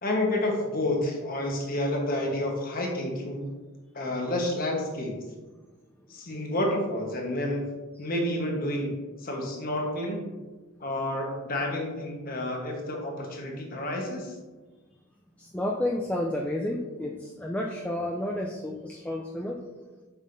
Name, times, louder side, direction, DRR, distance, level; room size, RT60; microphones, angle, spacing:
voice 1, 0.0-3.5 3.9-5.1 6.1-7.7 8.0-8.9 9.2-10.2 10.8-14.3, left 1 dB, 45° left, 0 dB, 1.2 m, -29 dB
voice 2, 15.4-19.6, left 1 dB, 5° left, -1 dB, 0.3 m, -31 dB
7.2 x 5.5 x 2.6 m, 1.3 s
head